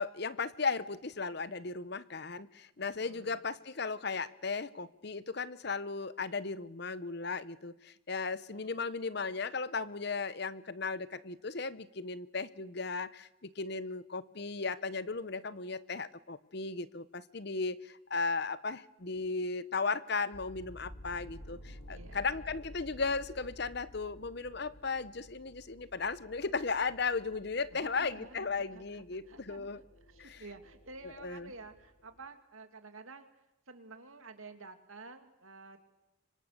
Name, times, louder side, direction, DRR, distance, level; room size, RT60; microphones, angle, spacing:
voice 1, 0.0-29.8 30.2-30.4 31.0-31.5, left 4 dB, 50° left, 16 dB, 0.9 m, -36 dB
voice 2, 2.8-3.4 8.5-8.8 21.9-22.4 27.7-33.3 33.7-35.8, right 3 dB, 85° right, 7 dB, 2.6 m, -51 dB
sound 1, 20.3-32.3, equal, 80° left, 4.7 m, -53 dB
26.0 x 25.0 x 6.7 m, 0.90 s
head